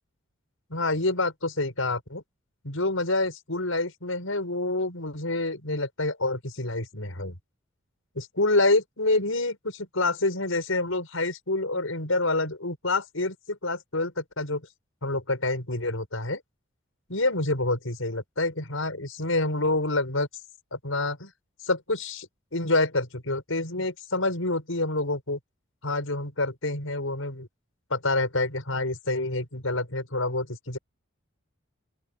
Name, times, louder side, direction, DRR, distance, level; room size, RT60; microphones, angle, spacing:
voice 1, 0.7-2.2 2.6-7.4 8.2-14.6 15.0-16.4 17.1-20.3 20.7-21.3 21.7-25.4 25.8-27.5 27.9-30.8, left 2 dB, 80° left, 5.9 m, -27 dB
open air
head